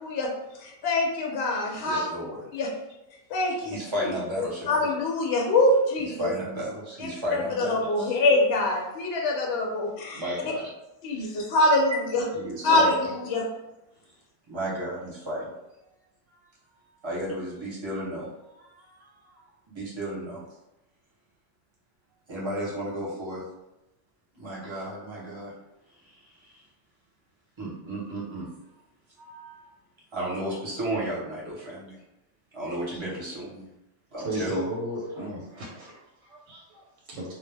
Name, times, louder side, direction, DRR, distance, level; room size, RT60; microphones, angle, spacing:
voice 1, 0.0-0.3 0.6-2.1 2.5-2.7 3.3-3.7 4.7-6.2 7.6-10.2 11.0-12.2 12.6-13.5, left 2 dB, 65° left, -1 dB, 0.8 m, -24 dB
voice 2, 1.8-2.4 3.6-4.9 6.0-8.2 10.1-10.7 11.9-13.1 14.5-15.5 16.3-16.5 17.0-19.3 19.7-20.4 22.3-23.4 24.3-25.5 26.0-26.6 27.6-28.5 29.2-29.7 30.1-32.0 32.5-33.7 34.1-34.6 34.9-35.0, right 1 dB, 25° right, -6 dB, 0.8 m, -34 dB
voice 3, 34.2-36.0 36.5-36.6 37.1-37.3, right 1 dB, 80° right, -3 dB, 1.0 m, -33 dB
2.2 x 2.0 x 3.2 m, 0.93 s
omnidirectional pair, 1.2 m